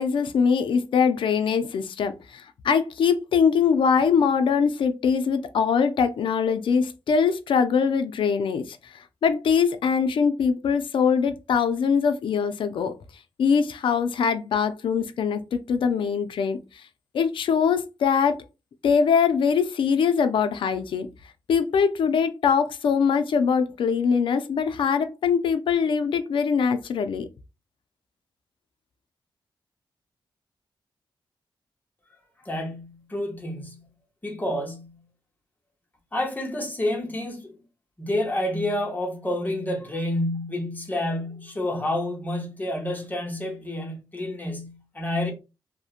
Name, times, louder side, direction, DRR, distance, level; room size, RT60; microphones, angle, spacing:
voice 1, 0.0-8.9 9.2-12.9 13.4-16.6 17.1-18.4 18.8-21.1 21.5-27.3, left 6 dB, 75° left, 0.4 m, -22 dB
voice 2, 32.4-33.8 34.2-35.0 36.1-37.5 38.0-45.3, left 1 dB, 20° left, 0.8 m, -29 dB
2.7 x 2.1 x 2.4 m
cardioid pair, 80°, 9 cm